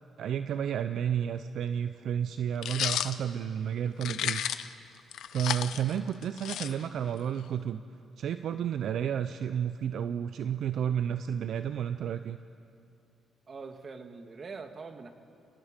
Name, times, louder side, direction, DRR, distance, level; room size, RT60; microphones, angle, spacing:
voice 1, 0.2-4.4 5.3-7.8 8.2-12.4, right 9 dB, 70° right, 10 dB, 0.6 m, -31 dB
sound 1, 2.6-3.1 4.0-4.7 5.1-7.1, left 10 dB, 75° left, 0.7 m, -32 dB
voice 2, 13.5-15.1, right 4 dB, 40° right, 7 dB, 1.7 m, -43 dB
29.5 x 19.0 x 5.1 m, 2.5 s
cardioid pair, 90°, 0 cm